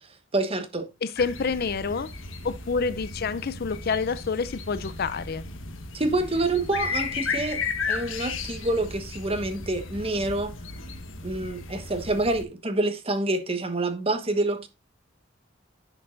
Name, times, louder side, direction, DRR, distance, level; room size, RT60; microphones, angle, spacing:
voice 1, 0.3-0.9 5.9-10.5 11.2-14.7, right 2 dB, 30° right, 1.2 m, -27 dB
voice 2, 1.0-2.1 2.4-5.4, left 5 dB, 50° left, 0.5 m, -28 dB
sound 1, 1.2-12.4, left 4 dB, 70° left, 1.3 m, -35 dB
10.5 x 6.8 x 2.5 m
head